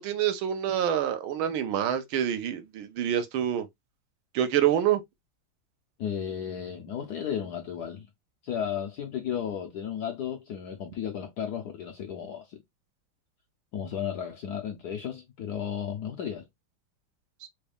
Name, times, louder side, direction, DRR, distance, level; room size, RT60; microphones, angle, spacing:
voice 1, 0.0-3.7 4.3-5.0, right 10 dB, 80° right, 1.5 m, -26 dB
voice 2, 6.0-8.1 8.4-12.6 13.7-16.5, left 8 dB, 75° left, 0.9 m, -34 dB
4.1 x 2.3 x 3.3 m
omnidirectional pair, 2.3 m